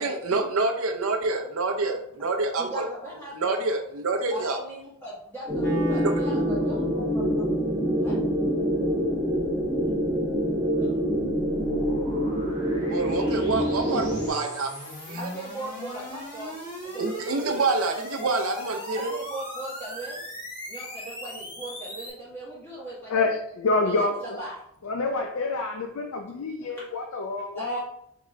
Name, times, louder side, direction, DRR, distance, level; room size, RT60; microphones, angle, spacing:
voice 1, 0.0-2.8 3.3-4.6 6.0-6.1 12.8-15.3 17.0-19.1, right 3 dB, 75° right, 4 dB, 0.6 m, -27 dB
voice 2, 2.6-3.6 4.3-7.3 8.0-8.2 10.8-10.9 15.1-17.6 18.9-20.2 20.7-23.1 23.8-24.6 26.8-26.9 27.5-27.8, right 1 dB, 10° left, -9 dB, 1.7 m, -38 dB
sound 1, 5.5-14.3, equal, 15° right, 0.6 m, -26 dB
Wind instrument woodwind instrument, 5.6-11.7, left 1 dB, 55° left, 1.7 m, -36 dB
sound 2, 8.8-22.1, equal, 35° left, 1.7 m, -39 dB
voice 3, 23.1-24.4 24.8-27.8, left 3 dB, 70° left, 3 dB, 0.5 m, -27 dB
3.7 x 3.7 x 3.2 m, 0.73 s
head